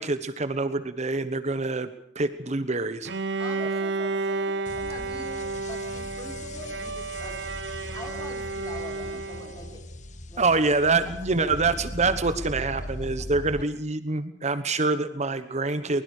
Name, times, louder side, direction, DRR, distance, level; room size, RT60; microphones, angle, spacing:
voice 1, 0.0-1.9 2.1-3.1 10.4-16.0, right 3 dB, 40° right, 12 dB, 1.2 m, -26 dB
Bowed string instrument, 3.1-9.8, right 3 dB, 70° right, 0.8 m, -32 dB
voice 2, 3.4-7.4 7.9-9.8 10.3-10.5 11.0-11.1 11.4-11.5, left 1 dB, 20° left, 3 dB, 5.2 m, -43 dB
sound 1, 4.7-13.6, left 1 dB, 45° left, 1.5 m, -39 dB
23.5 x 21.5 x 6.6 m, 0.65 s
head